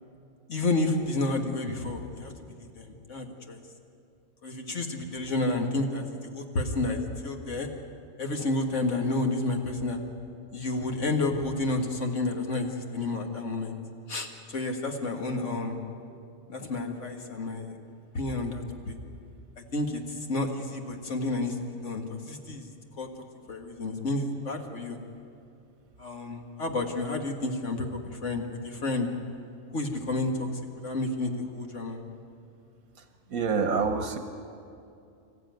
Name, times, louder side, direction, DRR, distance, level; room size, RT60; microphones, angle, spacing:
voice 1, 0.5-2.3 2.6-3.6 4.4-7.7 8.2-10.0 10.5-13.8 14.1-15.8 16.5-17.7 18.1-19.0 19.6-21.6 21.8-22.7 23.0-25.0 26.0-29.1 29.7-30.5 30.8-32.0, left 2 dB, 60° left, 3 dB, 2.1 m, -30 dB
voice 2, 33.3-34.2, right 5 dB, 80° right, 7 dB, 1.6 m, -26 dB
25.0 x 14.5 x 9.3 m, 2.6 s
omnidirectional pair, 1.5 m